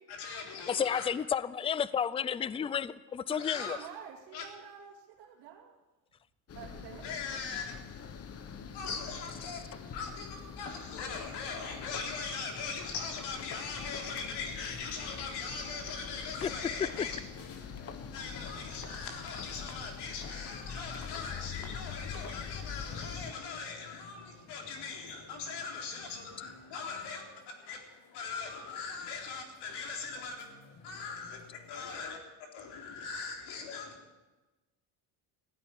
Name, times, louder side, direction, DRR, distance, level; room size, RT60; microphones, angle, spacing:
voice 1, 0.1-1.1 3.3-3.8 4.3-4.5 7.0-7.7 8.7-9.6 9.9-17.2 18.1-27.8 28.1-30.5 30.8-31.4 31.7-33.9, left 5 dB, 75° left, 2 dB, 3.9 m, -40 dB
voice 2, 0.7-3.8 16.4-16.5, left 7 dB, 15° left, 18 dB, 0.4 m, -31 dB
voice 3, 3.3-5.8 6.5-7.2, right 8 dB, 75° right, -3 dB, 2.5 m, -49 dB
sound 1, 6.5-23.3, left 6 dB, 35° left, 1.2 m, -44 dB
sound 2, 13.8-32.0, left 5 dB, 55° left, 2.6 m, -56 dB
15.0 x 9.6 x 9.8 m, 1.1 s
cardioid pair, 120°, 40 cm